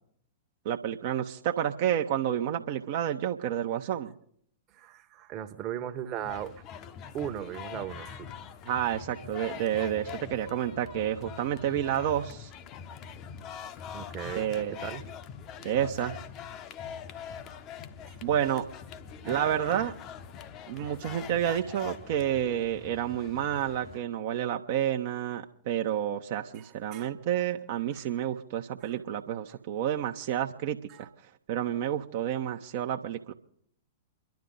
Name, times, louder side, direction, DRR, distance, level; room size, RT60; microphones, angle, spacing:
voice 1, 0.6-4.1 8.7-12.5 14.3-14.8 15.6-16.2 18.2-18.6 19.3-19.9 20.7-31.1 31.5-33.3, right 10 dB, 50° right, 4 dB, 1.1 m, -30 dB
voice 2, 4.7-6.6 7.1-8.3 13.9-15.2 18.1-18.2 19.2-19.9 20.8-20.9 26.5-27.2 27.9-28.0 28.8-28.9 30.9-31.1, right 10 dB, 30° right, 7 dB, 1.3 m, -38 dB
sound 1, 6.2-24.0, left 8 dB, 35° left, 0.9 m, -43 dB
29.5 x 12.0 x 4.0 m, 0.67 s
figure-of-eight pair, 100°, 0 cm